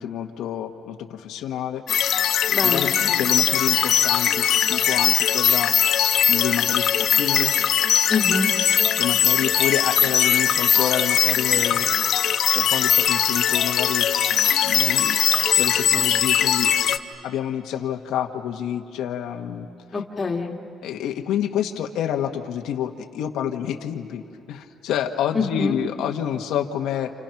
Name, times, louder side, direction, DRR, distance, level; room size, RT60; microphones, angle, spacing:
voice 1, 0.0-1.8 2.6-5.7 6.3-7.5 9.0-11.9 12.5-14.1 14.6-15.2 15.5-16.7 17.2-19.7 20.8-24.2 24.5-27.1, left 10 dB, 85° left, 3 dB, 1.3 m, -28 dB
sound 1, 1.9-17.0, left 9 dB, 55° left, 0.8 m, -20 dB
voice 2, 2.5-3.2 8.1-8.5 19.9-20.5 25.3-25.7, left 4 dB, 20° left, 0 dB, 1.7 m, -25 dB
29.5 x 29.0 x 5.9 m, 2.7 s
cardioid pair, 170°, 0 cm